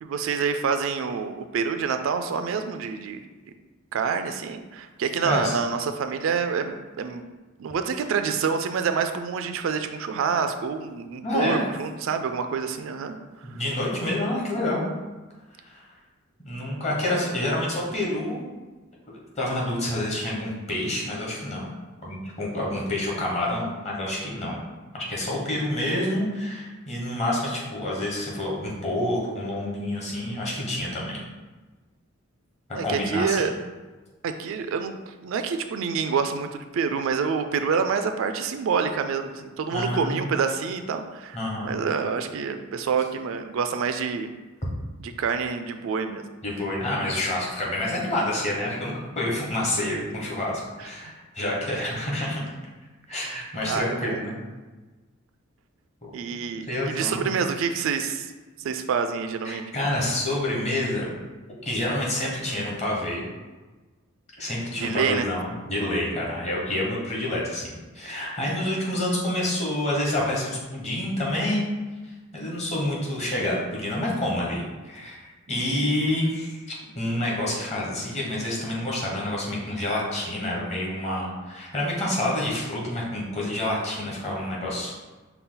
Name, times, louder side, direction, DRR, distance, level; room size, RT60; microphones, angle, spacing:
voice 1, 0.0-3.3 3.9-7.2 7.6-13.2 13.5-13.6 32.7-33.5 34.2-41.4 41.6-44.3 45.0-46.2 53.2-54.2 56.1-58.3 58.6-59.6 64.7-65.3, right 6 dB, 65° right, 8 dB, 0.3 m, -27 dB
voice 2, 5.2-5.5 11.2-11.7 13.4-14.9 15.6-15.9 16.4-18.5 19.3-21.8 22.0-24.6 24.9-31.2 32.8-33.5 39.7-40.3 41.3-41.7 46.4-52.4 53.1-54.4 56.0-56.2 56.7-57.3 59.4-61.1 61.6-63.2 64.4-71.7 72.0-84.9, left 1 dB, 30° left, -3 dB, 1.1 m, -28 dB
5.5 x 2.3 x 3.8 m, 1.3 s
head